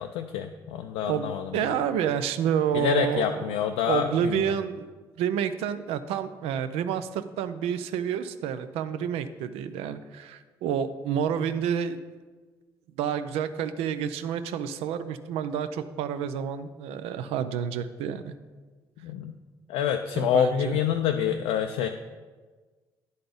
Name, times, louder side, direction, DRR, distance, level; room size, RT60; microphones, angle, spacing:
voice 1, 0.0-1.7 2.7-4.6 19.0-19.4 19.7-21.9, left 9 dB, 80° left, 5 dB, 0.4 m, -27 dB
voice 2, 1.1-3.4 3.9-4.9 5.2-12.0 13.0-18.3 20.1-20.8, right 8 dB, 75° right, 11 dB, 0.4 m, -29 dB
10.0 x 3.9 x 5.1 m, 1.4 s
hypercardioid pair, 50°, 10 cm